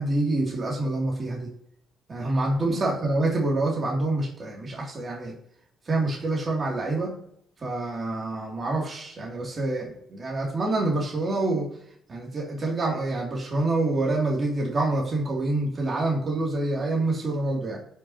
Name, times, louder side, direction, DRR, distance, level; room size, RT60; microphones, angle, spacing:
voice 1, 0.0-1.5 2.1-5.4 5.9-7.2 7.6-11.7 12.1-17.8, right 2 dB, 35° right, -3 dB, 2.6 m, -26 dB
17.5 x 6.0 x 2.9 m, 0.68 s
cardioid pair, 90°, 0 cm